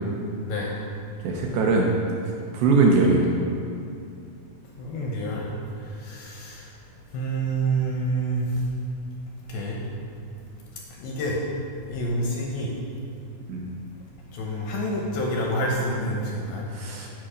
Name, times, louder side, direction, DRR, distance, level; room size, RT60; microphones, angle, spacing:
voice 1, 1.2-1.9 2.5-3.3 13.5-13.7 16.7-17.1, right 3 dB, 75° right, -1 dB, 2.3 m, -21 dB
voice 2, 4.8-5.5 5.8-6.7 7.1-8.6 9.5-9.8 11.0-11.4 11.9-12.7 14.3-16.7, right 1 dB, 75° left, -2 dB, 2.4 m, -28 dB
7.5 x 6.8 x 5.0 m, 2.5 s
omnidirectional pair, 4.8 m